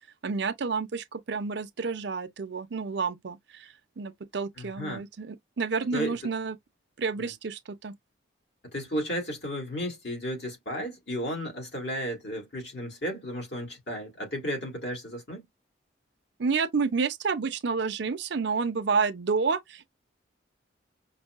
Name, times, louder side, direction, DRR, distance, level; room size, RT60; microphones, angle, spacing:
voice 1, 0.2-3.7 4.0-6.6 7.0-7.9 16.4-19.9, right 5 dB, 60° right, 0.5 m, -29 dB
voice 2, 4.6-5.1 5.9-6.3 7.2-7.3 8.6-15.5, equal, 60° left, 1.9 m, -34 dB
5.3 x 2.1 x 2.4 m
head